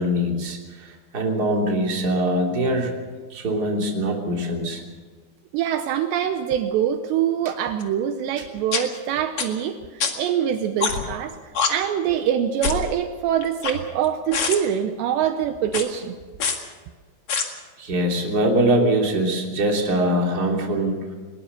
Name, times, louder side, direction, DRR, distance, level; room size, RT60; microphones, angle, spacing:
voice 1, 0.0-2.9 3.3-4.8 17.8-21.0, right 1 dB, 25° right, 0 dB, 3.0 m, -23 dB
voice 2, 5.5-11.4 11.7-16.1, right 9 dB, 75° right, 7 dB, 2.9 m, -24 dB
sound 1, 7.8-7.9 8.7-8.8 9.4-9.5 10.0-10.1 10.8-11.1 11.5-11.7 12.6-12.9 13.4-14.0 14.3-14.6 15.7-15.8 16.4-16.6 17.3-17.4, left 5 dB, 50° left, 1.9 m, -24 dB
20.5 x 20.0 x 6.8 m, 1.4 s
omnidirectional pair, 5.3 m